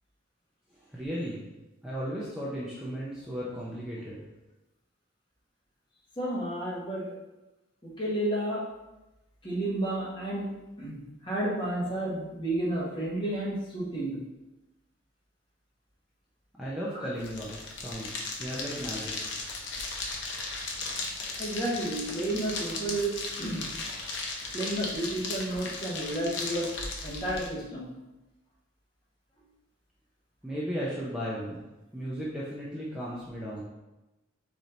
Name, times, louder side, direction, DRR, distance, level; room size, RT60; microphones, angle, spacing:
voice 1, 0.9-1.4 1.8-4.2 16.6-19.1 30.4-31.6 31.9-33.6, equal, 5° right, -7 dB, 0.6 m, -35 dB
voice 2, 6.2-7.1 7.8-8.6 9.4-10.5 10.8-14.2 21.4-23.7 24.5-26.7 27.0-27.9, right 1 dB, 25° left, -6 dB, 1.2 m, -31 dB
sound 1, 17.2-27.5, left 3 dB, 60° left, 0.8 m, -36 dB
4.8 x 2.8 x 3.8 m, 1.0 s
head